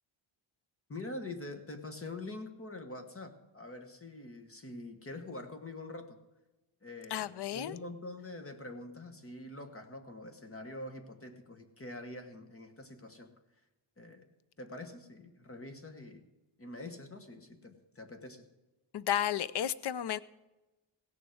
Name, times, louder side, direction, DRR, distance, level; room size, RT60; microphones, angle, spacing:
voice 1, 0.9-6.2 6.8-13.3 14.0-14.3 14.6-16.2 16.6-18.4, left 2 dB, 30° left, 1.2 m, -45 dB
voice 2, 7.1-7.7 18.9-20.2, left 10 dB, 60° left, 0.6 m, -32 dB
16.0 x 7.1 x 7.7 m
wide cardioid pair, 170°, 47 cm